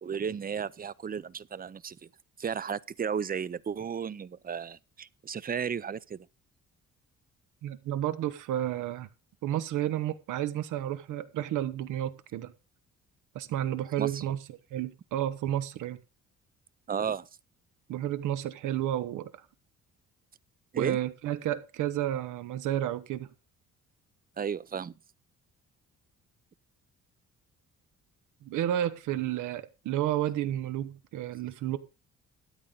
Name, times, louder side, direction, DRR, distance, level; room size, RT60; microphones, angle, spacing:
voice 1, 0.0-2.0 2.4-6.3 14.0-14.2 16.9-17.3 20.7-21.0 24.4-24.9, right 7 dB, 30° right, 0.6 m, -34 dB
voice 2, 7.6-9.1 9.4-12.5 13.3-14.4 14.7-16.0 17.9-19.3 20.8-23.3 28.4-31.8, right 12 dB, 90° right, 1.2 m, -31 dB
13.0 x 9.5 x 3.9 m
cardioid pair, 90°, 30 cm